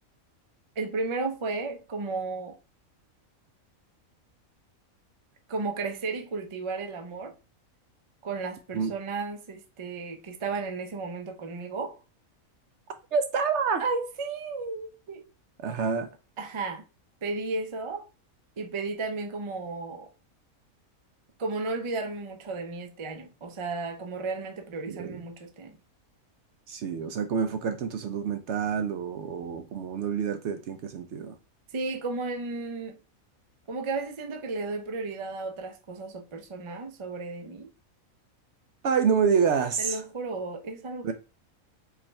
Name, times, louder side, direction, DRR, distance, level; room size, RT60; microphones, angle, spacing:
voice 1, 0.8-2.6 5.5-7.3 8.2-12.0 13.8-15.2 16.4-16.8 17.2-18.1 18.6-20.1 21.4-25.8 31.7-33.0 33.7-37.7 39.8-41.1, right 3 dB, 40° right, 0.4 m, -33 dB
voice 2, 13.1-13.8 15.6-16.1 24.9-25.2 26.7-31.3 38.8-40.0 41.0-41.1, right 6 dB, 65° right, 0.7 m, -27 dB
4.8 x 2.4 x 4.3 m
omnidirectional pair, 1.5 m